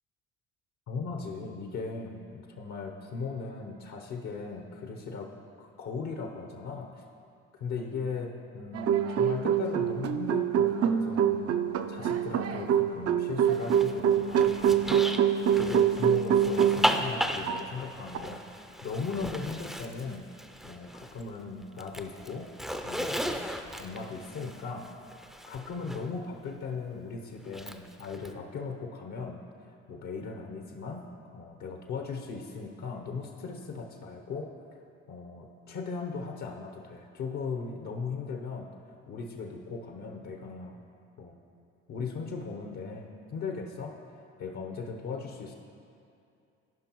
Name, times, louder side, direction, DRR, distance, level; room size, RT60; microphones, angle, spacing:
voice 1, 0.9-5.3 5.6-7.0 7.5-11.4 11.9-15.0 15.5-22.5 22.8-23.5 23.8-24.9 25.5-29.4 29.9-31.0 31.3-34.5 35.1-38.7 39.1-40.8 41.2-41.3 41.9-44.0 44.4-45.5, left 4 dB, 65° left, 2 dB, 0.9 m, -38 dB
sound 1, 8.7-17.1 17.5-17.6 18.1-18.2, right 8 dB, 50° right, 0.5 m, -25 dB
Zipper (clothing), 13.5-21.3 21.6-26.0 27.4-28.3, equal, ahead, 0.5 m, -36 dB
14.5 x 5.3 x 3.0 m, 2.5 s
supercardioid pair, 70°, 31 cm